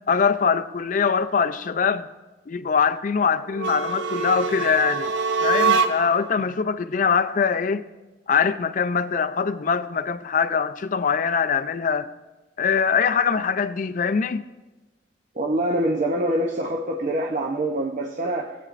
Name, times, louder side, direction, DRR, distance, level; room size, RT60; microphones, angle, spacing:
voice 1, 0.1-2.1 2.5-5.1 5.4-7.9 8.3-12.1 12.6-14.5, left 6 dB, 45° left, 0.4 m, -23 dB
sound 1, 3.5-6.3, right 4 dB, 85° right, 0.6 m, -24 dB
voice 2, 15.3-18.5, right 1 dB, 45° right, 0.7 m, -25 dB
18.0 x 8.5 x 2.5 m
head